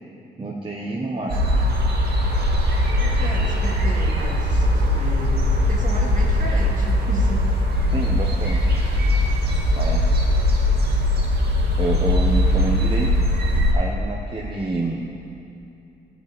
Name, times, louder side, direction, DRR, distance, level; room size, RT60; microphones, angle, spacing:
voice 1, 0.4-1.4 7.9-8.7 9.7-10.2 11.8-13.3 13.7-15.1, right 2 dB, 25° right, -2 dB, 1.1 m, -28 dB
sound 1, 1.3-13.7, left 1 dB, 60° right, 2.1 m, -20 dB
voice 2, 2.9-5.4 5.6-7.6, right 2 dB, 45° right, -2 dB, 2.4 m, -33 dB
13.0 x 5.3 x 8.8 m, 2.7 s
cardioid pair, 90°, 18 cm